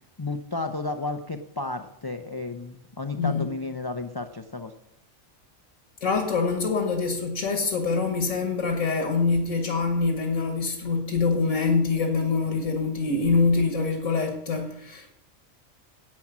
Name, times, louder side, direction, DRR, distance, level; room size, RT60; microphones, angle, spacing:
voice 1, 0.2-4.7, left 3 dB, 30° left, 6 dB, 0.4 m, -32 dB
voice 2, 6.0-15.1, left 4 dB, 80° left, 4 dB, 1.9 m, -25 dB
10.5 x 8.6 x 6.0 m, 0.75 s
omnidirectional pair, 1.3 m